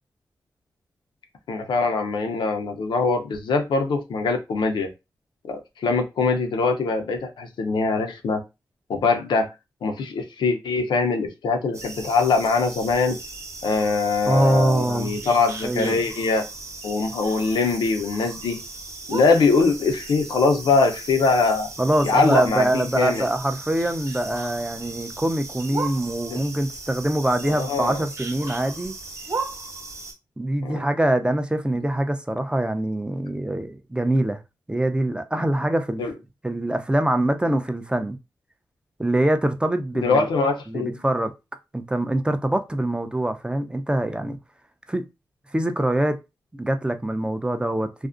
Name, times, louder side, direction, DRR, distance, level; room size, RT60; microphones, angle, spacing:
voice 1, 1.5-4.9 5.5-8.4 8.9-9.5 9.8-13.2 13.6-16.4 16.8-18.6 19.1-21.7 22.0-23.3 26.3-26.4 27.5-28.0 30.6-30.8 36.0-36.1 40.0-40.9, left 4 dB, 80° left, 0.6 m, -22 dB
sound 1, 11.7-30.1, right 3 dB, 40° right, 0.9 m, -36 dB
voice 2, 14.3-15.2 15.6-16.0 21.8-28.9 30.4-34.4 34.7-36.0 36.4-38.2 39.0-40.3 40.7-41.3 41.7-44.4 44.9-45.0 45.5-46.2 46.5-48.1, right 1 dB, 10° right, 0.5 m, -24 dB
2.5 x 2.0 x 2.5 m
cardioid pair, 45°, 8 cm